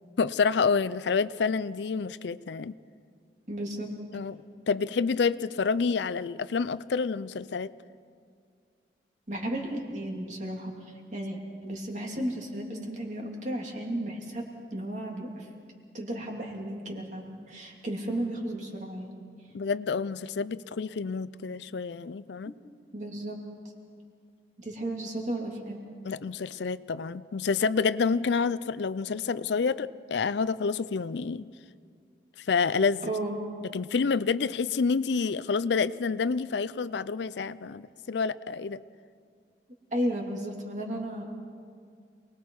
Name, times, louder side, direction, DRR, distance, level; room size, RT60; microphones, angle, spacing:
voice 1, 0.2-2.7 4.1-4.4 4.7-7.7 19.5-22.5 26.0-31.4 32.4-33.0 33.7-38.8, left 5 dB, 75° left, 16 dB, 0.5 m, -28 dB
voice 2, 3.5-3.9 9.3-10.7 11.1-14.4 14.7-15.5 15.9-19.1 22.4-22.5 22.9-23.4 24.6-25.8 33.0-33.4 39.9-41.2, right 1 dB, 40° right, 0 dB, 2.7 m, -34 dB
28.0 x 20.0 x 4.7 m, 2.2 s
head